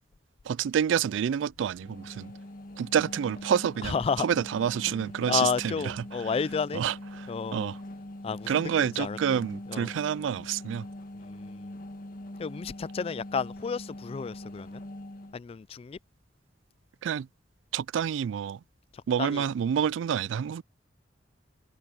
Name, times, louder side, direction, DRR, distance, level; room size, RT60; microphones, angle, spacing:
voice 1, 0.4-2.3 2.8-6.0 6.7-7.8 8.5-10.9 17.0-17.3 17.7-18.6 19.1-20.6, right 8 dB, 85° right, 0.3 m, -28 dB
sound 1, 1.8-15.4, left 1 dB, 50° left, 1.8 m, -43 dB
voice 2, 3.8-4.3 4.8-4.9 5.3-6.8 7.3-7.7 8.2-9.4 9.7-9.9 11.2-11.7 12.4-14.8 15.3-16.0 18.9-19.5, left 5 dB, 30° left, 0.3 m, -32 dB
head